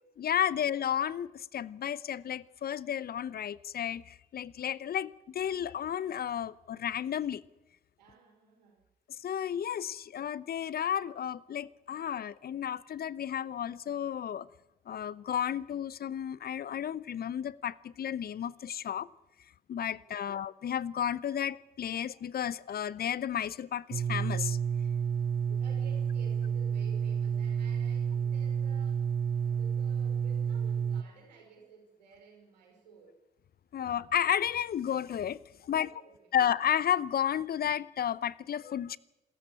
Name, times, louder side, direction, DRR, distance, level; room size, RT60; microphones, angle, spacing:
voice 1, 0.2-7.4 9.1-14.5 14.9-19.1 19.7-24.6 25.5-25.6 33.7-35.9 36.3-39.0, left 9 dB, 45° left, 21 dB, 0.8 m, -32 dB
voice 2, 8.0-8.8 19.9-20.3 25.6-29.1 29.4-33.2 35.7-36.3, right 4 dB, 85° right, 1 dB, 5.3 m, -55 dB
sound 1, 23.9-31.0, right 7 dB, 45° right, 0.8 m, -30 dB
27.0 x 14.5 x 8.8 m, 1.0 s
figure-of-eight pair, 40°, 21 cm